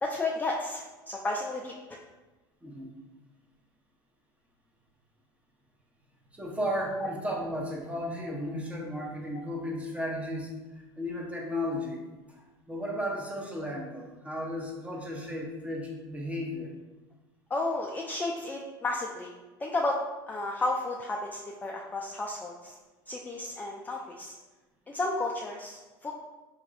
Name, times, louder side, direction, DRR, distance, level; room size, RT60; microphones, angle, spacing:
voice 1, 0.0-2.0 17.5-19.3 19.6-20.0 20.3-22.8 23.1-24.3 24.9-26.1, left 2 dB, 15° left, -1 dB, 0.3 m, -32 dB
voice 2, 6.3-16.7, equal, 10° right, -2 dB, 0.8 m, -34 dB
3.5 x 3.0 x 2.4 m, 1.2 s
hypercardioid pair, 80°, 13 cm